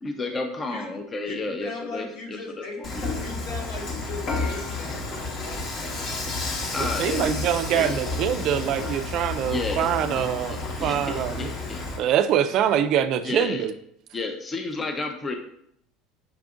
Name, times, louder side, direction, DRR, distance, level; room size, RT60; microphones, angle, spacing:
voice 1, 0.0-3.1 6.7-8.0 9.5-11.8 13.2-13.7 14.1-15.4, left 3 dB, 25° left, 5 dB, 0.5 m, -32 dB
voice 2, 1.6-2.8 3.2-6.1, left 3 dB, 75° left, -1 dB, 1.4 m, -38 dB
Dishes pots and pans / Frying (food), 2.8-12.0, left 3 dB, 45° left, 0.9 m, -31 dB
voice 3, 6.8-11.5 12.0-13.7, right 9 dB, 55° right, 10 dB, 0.3 m, -24 dB
5.8 x 2.5 x 3.6 m, 0.72 s
supercardioid pair, 120°, 0 cm